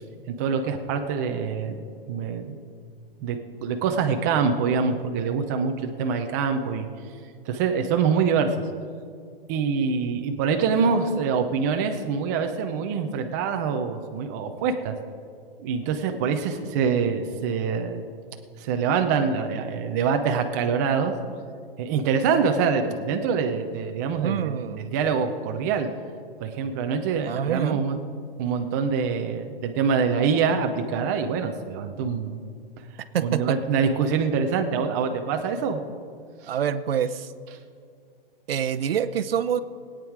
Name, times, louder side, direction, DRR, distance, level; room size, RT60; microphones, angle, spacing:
voice 1, 0.3-1.8 2.1-2.6 3.2-6.9 7.5-8.6 9.5-14.9 15.6-18.0 18.6-21.1 21.8-25.9 26.4-28.0 28.4-32.4 33.2-35.8 36.4-36.5, right 6 dB, 20° right, 5 dB, 0.5 m, -25 dB
voice 2, 24.2-24.8 27.2-27.8 33.1-33.6 36.4-37.3 38.5-39.6, right 8 dB, 75° right, 11 dB, 0.8 m, -26 dB
20.5 x 9.1 x 4.7 m, 2.2 s
hypercardioid pair, 165°, 30 cm